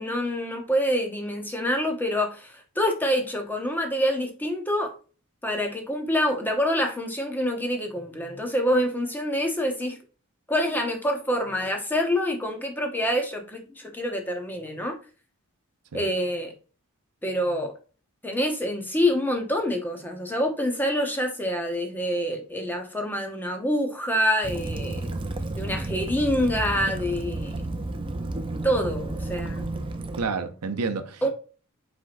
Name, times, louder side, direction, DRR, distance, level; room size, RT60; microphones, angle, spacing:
voice 1, 0.0-4.9 5.4-10.0 10.5-15.0 15.9-16.5 17.2-17.7 18.2-25.0 25.5-27.6 28.6-29.7 31.2-31.3, equal, 10° left, 0.8 m, -26 dB
Waves surf / Splash splatter / Trickle dribble, 24.4-30.3, right 2 dB, 25° right, 0.5 m, -32 dB
voice 2, 30.2-31.3, right 4 dB, 90° right, 0.7 m, -29 dB
4.7 x 4.3 x 2.5 m
head